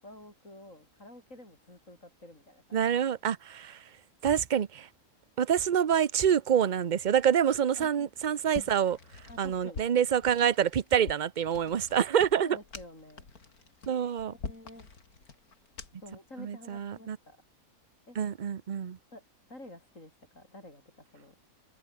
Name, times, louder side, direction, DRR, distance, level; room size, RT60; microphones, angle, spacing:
voice 1, 0.0-2.8 7.8-8.1 9.3-9.8 12.4-13.3 14.3-14.9 16.0-17.4 18.1-18.2 19.1-19.2 19.5-21.3, left 1 dB, 60° left, 8.5 m, -50 dB
voice 2, 2.7-3.9 4.2-4.9 5.4-12.6 13.9-14.3 16.4-17.2 18.1-19.0, right 8 dB, 40° right, 0.7 m, -27 dB
sound 1, 8.5-16.2, left 4 dB, 80° left, 3.2 m, -45 dB
omnidirectional pair, 1.5 m